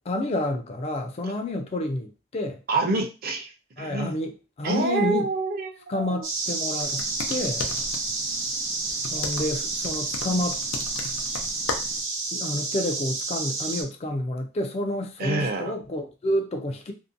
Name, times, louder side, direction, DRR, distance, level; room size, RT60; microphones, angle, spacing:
voice 1, 0.1-2.6 3.8-5.3 5.9-7.7 9.1-10.6 12.3-16.9, left 1 dB, 30° left, 0.4 m, -29 dB
voice 2, 2.7-3.5 3.8-4.3 4.6-6.2 15.2-15.7, right 3 dB, 50° right, 0.5 m, -27 dB
sound 1, 6.2-13.8, right 3 dB, 85° right, 0.8 m, -30 dB
sound 2, 6.8-12.0, left 3 dB, 90° left, 0.5 m, -36 dB
2.6 x 2.1 x 2.5 m
head